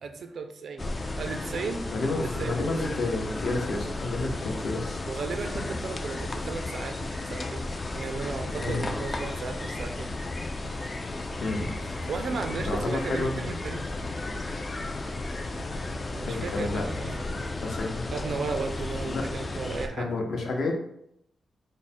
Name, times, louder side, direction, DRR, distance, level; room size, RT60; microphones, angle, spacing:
voice 1, 0.0-1.9 2.2-2.7 5.1-10.2 11.8-13.9 16.1-17.5 18.1-20.1, right 4 dB, 50° right, 7 dB, 0.4 m, -35 dB
sound 1, 0.8-19.9, left 2 dB, 25° left, 0.3 m, -34 dB
voice 2, 1.9-5.0 8.6-8.8 11.4-11.7 12.7-13.4 16.3-16.8 17.6-18.1 19.1-19.3 19.9-20.8, left 2 dB, 50° left, 2 dB, 0.7 m, -30 dB
4.7 x 2.1 x 4.2 m, 0.73 s
wide cardioid pair, 180°, 0 cm